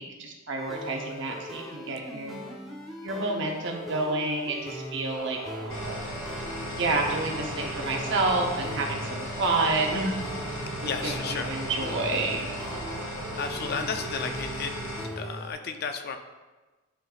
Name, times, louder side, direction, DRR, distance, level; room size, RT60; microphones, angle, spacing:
voice 1, 0.0-2.4 3.0-5.4 6.8-10.2 10.6-12.5, right 2 dB, 55° right, 1 dB, 0.9 m, -29 dB
sound 1, 0.6-15.5, equal, ahead, 0.7 m, -40 dB
sound 2, 5.1-13.4, right 3 dB, 85° right, 0.7 m, -42 dB
sound 3, 5.7-15.0, equal, 65° left, 1.7 m, -36 dB
voice 2, 10.8-11.7 13.4-14.7 15.2-16.2, left 5 dB, 45° left, 7 dB, 0.4 m, -33 dB
11.0 x 3.9 x 2.4 m, 1.2 s
head